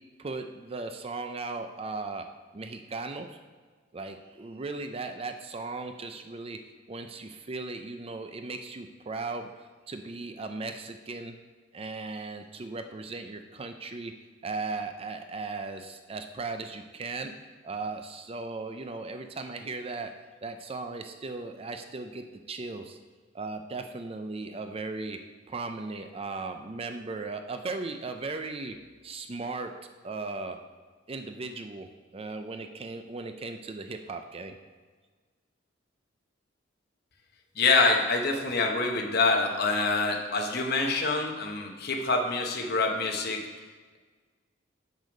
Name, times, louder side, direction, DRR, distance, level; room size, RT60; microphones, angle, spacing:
voice 1, 0.2-2.3 2.5-3.4 3.9-6.6 6.9-11.4 11.7-14.1 14.4-17.3 17.6-20.1 20.4-23.0 23.3-25.2 25.5-28.8 29.0-29.7 30.0-30.6 31.1-34.6, right 3 dB, 30° right, 7 dB, 0.5 m, -37 dB
voice 2, 37.6-43.5, left 3 dB, 55° left, 2 dB, 1.0 m, -26 dB
6.9 x 6.4 x 5.1 m, 1.4 s
head